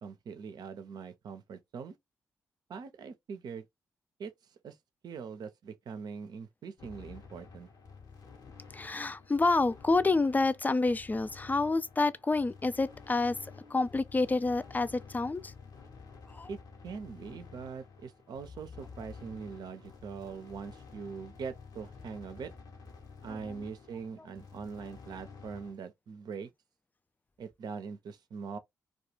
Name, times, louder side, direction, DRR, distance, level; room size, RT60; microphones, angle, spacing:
voice 1, 0.0-2.0 2.7-3.7 4.2-4.8 5.0-7.7 16.5-16.6 16.8-22.5 23.2-26.5 27.4-28.6, right 5 dB, 65° right, 0.6 m, -42 dB
sound 1, 6.8-25.7, left 5 dB, 60° left, 0.9 m, -51 dB
voice 2, 8.7-13.4 13.7-15.5 16.3-16.5, left 3 dB, 20° left, 0.4 m, -28 dB
2.4 x 2.3 x 2.9 m
hypercardioid pair, 40°, 8 cm